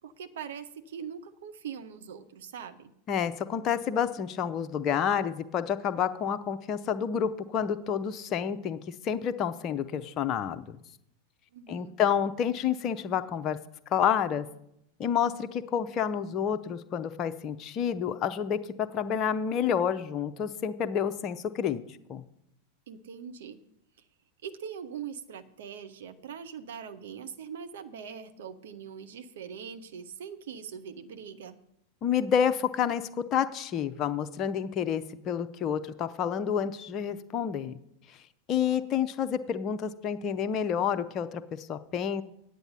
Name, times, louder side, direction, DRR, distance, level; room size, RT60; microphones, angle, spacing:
voice 1, 0.0-2.9 11.5-12.0 22.9-23.6 24.0-24.1 24.4-31.6 38.7-38.8, right 7 dB, 60° right, 9 dB, 0.7 m, -42 dB
voice 2, 3.1-10.8 11.7-13.6 13.9-14.5 15.0-21.8 22.1-22.2 32.0-37.8 38.5-42.2, left 8 dB, 30° left, 10 dB, 0.6 m, -29 dB
9.2 x 8.9 x 5.5 m, 0.78 s
figure-of-eight pair, 90°, 0 cm